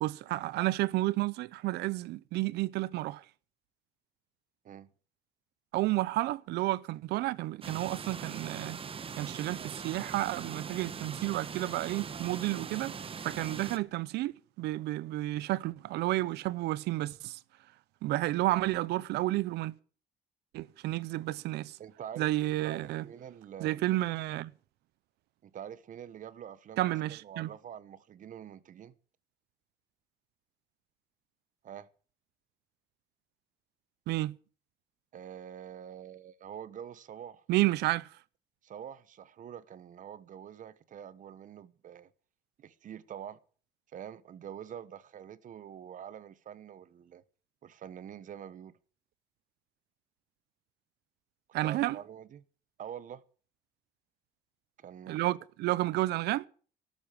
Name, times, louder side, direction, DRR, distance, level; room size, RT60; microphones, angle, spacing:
voice 1, 0.0-3.2 5.7-8.8 9.1-13.0 13.2-17.4 18.0-19.7 20.5-21.8 22.2-23.0 23.6-24.5 26.8-27.5 34.1-34.3 37.5-38.1 51.5-52.0 55.1-56.5, right 17 dB, 80° right, 0.7 m, -31 dB
sound 1, 7.6-13.8, right 6 dB, 35° right, 1.2 m, -41 dB
voice 2, 21.8-22.3 22.6-24.1 25.4-29.0 31.6-31.9 35.1-37.4 38.6-42.1 42.6-43.4 43.9-47.2 47.6-48.7 51.6-52.4 52.8-53.2 54.8-55.3, right 9 dB, 50° right, 1.2 m, -46 dB
13.0 x 12.0 x 7.6 m
cardioid pair, 110°, 17 cm